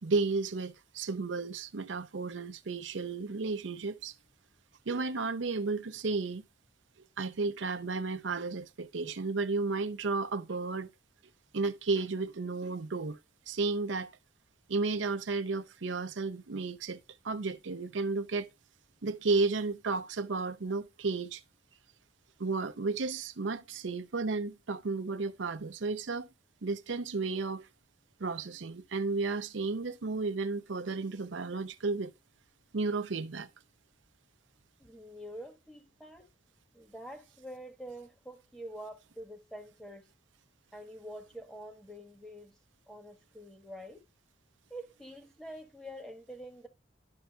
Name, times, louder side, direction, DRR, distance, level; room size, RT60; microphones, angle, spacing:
voice 1, 0.0-4.1 4.9-6.4 7.2-10.9 11.5-13.2 13.5-14.1 14.7-18.5 19.0-21.4 22.4-26.3 26.6-27.7 28.2-32.1 32.7-33.5, right 3 dB, 90° right, 0.6 m, -33 dB
voice 2, 34.8-36.3 36.7-40.0 40.7-42.6 42.9-44.0 44.7-46.7, equal, 5° left, 1.2 m, -46 dB
11.5 x 5.7 x 2.3 m
head